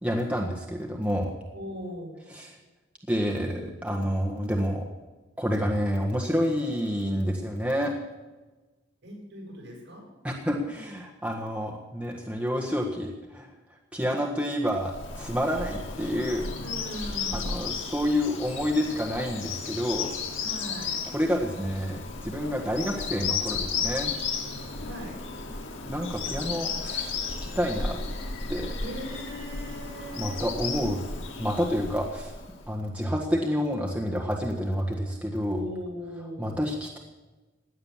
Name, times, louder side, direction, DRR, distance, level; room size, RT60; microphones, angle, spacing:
voice 1, 0.0-1.3 2.3-2.6 3.1-4.9 5.4-7.9 10.2-13.5 13.9-16.5 17.3-20.1 21.1-24.1 25.9-28.0 28.5-28.8 30.1-31.0 31.4-32.3 32.7-35.6 36.4-37.0, equal, 5° right, 0 dB, 1.6 m, -29 dB
voice 2, 1.5-2.1 9.0-10.1 16.6-17.6 20.4-20.9 24.8-25.2 28.8-30.4 35.4-36.5, equal, 60° right, -1 dB, 7.4 m, -39 dB
Bird vocalization bird call bird song, 14.7-32.7, left 5 dB, 85° left, 2.7 m, -34 dB
17.0 x 10.5 x 7.4 m, 1.2 s
head